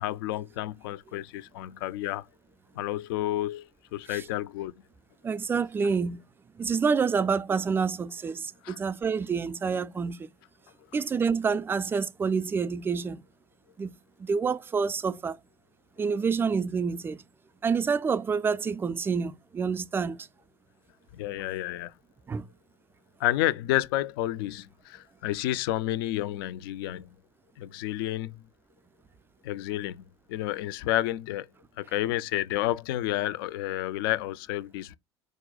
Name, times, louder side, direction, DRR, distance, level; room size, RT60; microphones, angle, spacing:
voice 1, 0.0-2.3 2.7-4.7 8.6-8.8 21.1-21.9 23.2-27.1 27.6-28.4 29.4-30.0 30.3-31.5 31.8-35.0, left 14 dB, 55° left, 0.4 m, -30 dB
voice 2, 5.2-6.2 6.6-10.3 10.9-13.2 13.8-13.9 14.2-15.4 16.0-17.2 17.6-20.3 22.3-22.5, right 5 dB, 15° right, 0.4 m, -28 dB
4.9 x 2.2 x 3.8 m
figure-of-eight pair, 70°, 14 cm